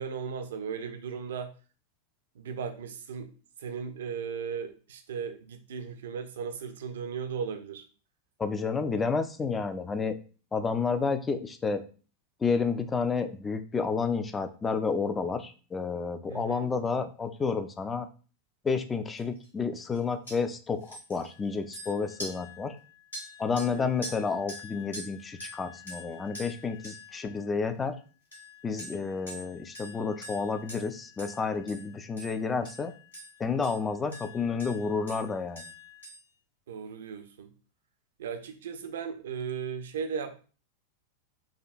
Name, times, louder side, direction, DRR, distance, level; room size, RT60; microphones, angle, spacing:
voice 1, 0.0-1.5 2.4-3.3 3.6-7.8 16.3-16.7 23.6-23.9 36.7-37.5 38.2-40.4, right 6 dB, 60° right, 7 dB, 0.5 m, -36 dB
voice 2, 8.4-10.2 10.5-11.8 12.4-18.1 18.6-22.7 23.4-27.9 28.6-32.9 33.4-35.7, left 5 dB, 15° left, 9 dB, 0.4 m, -30 dB
sound 1, 19.2-19.5 19.7-20.0 20.3-20.4 20.8-27.9 28.3-36.2, left 1 dB, 75° left, 1.7 m, -46 dB
4.9 x 2.2 x 2.5 m, 0.37 s
figure-of-eight pair, 90°, 0 cm